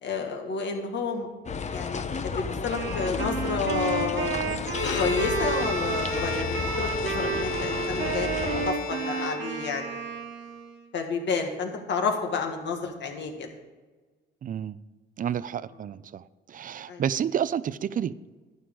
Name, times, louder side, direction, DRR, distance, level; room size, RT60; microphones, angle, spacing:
voice 1, 0.0-1.3 1.7-4.4 5.0-8.3 8.7-9.8 10.9-13.5 16.9-17.0, left 4 dB, 65° left, 3 dB, 1.8 m, -30 dB
sound 1, 1.5-8.7, left 5 dB, 35° left, 0.8 m, -33 dB
Wind instrument woodwind instrument, 2.7-10.9, right 6 dB, 65° right, 1.5 m, -32 dB
Bowed string instrument, 4.7-9.9, left 3 dB, 80° left, 1.1 m, -33 dB
voice 2, 14.4-14.8 15.2-16.2 16.5-18.3, right 9 dB, 45° right, 17 dB, 0.4 m, -30 dB
11.5 x 10.0 x 3.8 m, 1.3 s
cardioid pair, 90°, 20 cm